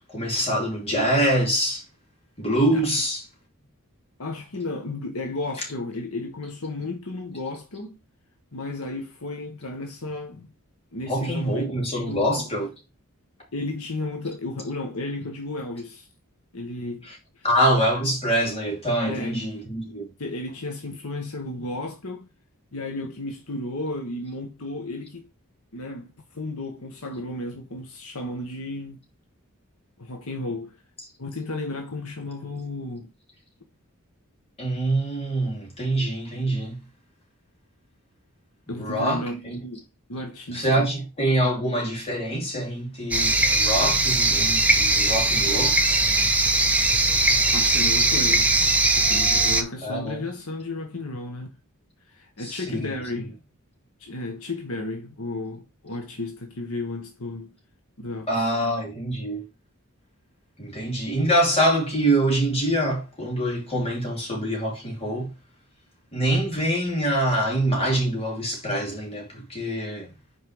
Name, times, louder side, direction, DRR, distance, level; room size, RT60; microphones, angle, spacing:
voice 1, 0.1-1.8 2.4-3.2 11.1-12.7 17.4-20.1 34.6-36.8 38.8-39.5 40.5-45.8 49.8-50.2 52.4-52.8 58.3-59.5 60.6-65.3 66.1-70.1, right 1 dB, 25° left, 3.2 m, -25 dB
voice 2, 4.2-8.0 8.5-10.5 10.9-12.5 13.5-16.1 16.5-17.1 17.4-17.5 19.0-19.4 20.2-22.3 22.7-25.3 25.7-29.0 30.0-30.8 31.2-33.1 38.7-39.8 40.1-40.9 47.5-48.6 48.9-51.6 52.1-53.4 54.0-57.5 58.0-58.3, left 2 dB, 70° left, 1.3 m, -33 dB
sound 1, 43.1-49.6, right 2 dB, 5° right, 0.9 m, -20 dB
5.7 x 4.7 x 4.7 m
head